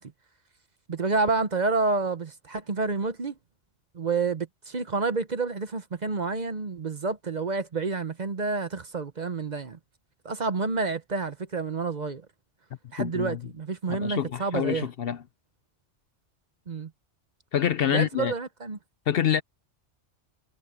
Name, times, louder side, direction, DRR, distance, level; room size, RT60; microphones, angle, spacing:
voice 1, 0.9-3.3 3.9-9.8 10.2-12.2 12.9-14.9 16.7-16.9 17.8-18.8, right 4 dB, 40° right, 0.9 m, -29 dB
voice 2, 13.0-13.4 13.9-15.2 17.5-18.3 19.1-19.4, left 9 dB, 60° left, 0.8 m, -26 dB
omnidirectional pair, 1.2 m